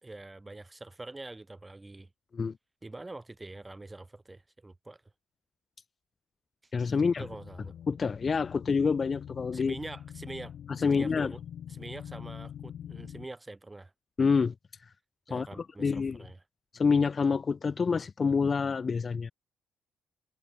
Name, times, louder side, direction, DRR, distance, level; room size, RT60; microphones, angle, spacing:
voice 1, 0.0-2.1 2.8-5.0 7.0-7.7 9.5-11.4 11.7-13.9 15.3-16.4, right 2 dB, 20° right, 3.4 m, -45 dB
voice 2, 6.7-7.2 7.9-9.7 10.8-11.3 14.2-14.5 15.3-16.2 16.7-19.3, left 5 dB, 40° left, 0.6 m, -27 dB
sound 1, 7.2-13.3, left 9 dB, 65° left, 2.5 m, -44 dB
supercardioid pair, 60°, 0 cm